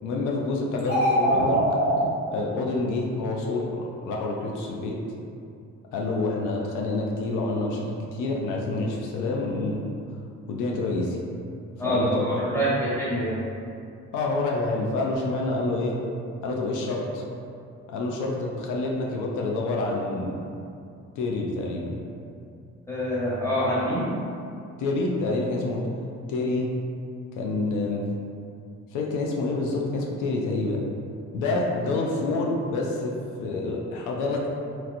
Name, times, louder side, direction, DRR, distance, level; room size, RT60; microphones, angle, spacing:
voice 1, 0.0-1.6 2.3-5.0 5.9-9.9 10.5-11.2 11.8-12.3 12.7-12.8 14.1-16.0 16.4-17.2 17.9-20.3 21.2-22.0 24.8-25.8 26.3-26.7 27.4-28.0 28.9-30.8 31.3-33.1 33.4-34.5, left 2 dB, 85° left, -1 dB, 0.5 m, -27 dB
sound 1, 0.8-2.0, equal, 65° left, 0.9 m, -22 dB
voice 2, 11.8-13.4 22.9-24.1, equal, 10° left, -9 dB, 1.2 m, -25 dB
3.0 x 2.9 x 2.5 m, 2.5 s
cardioid pair, 90°, 30 cm